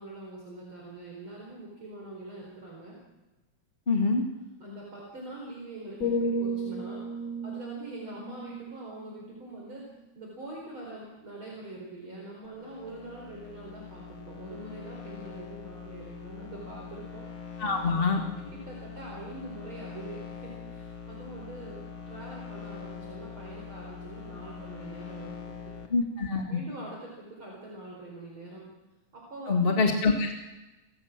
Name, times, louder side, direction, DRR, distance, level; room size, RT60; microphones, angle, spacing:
voice 1, 0.0-3.0 4.6-7.0 7.4-17.2 17.6-18.1 18.5-25.7 26.5-28.7 29.1-29.9, right 1 dB, 40° right, -2 dB, 5.4 m, -44 dB
voice 2, 3.9-4.2 17.6-18.2 25.9-26.6 29.5-30.3, left 4 dB, 20° left, 2 dB, 1.9 m, -25 dB
sound 1, 6.0-10.0 10.3-10.7, equal, 60° left, 4.0 m, -34 dB
sound 2, 12.4-25.9, left 6 dB, 45° left, 3.0 m, -43 dB
29.5 x 15.5 x 7.5 m, 1.1 s
omnidirectional pair, 3.3 m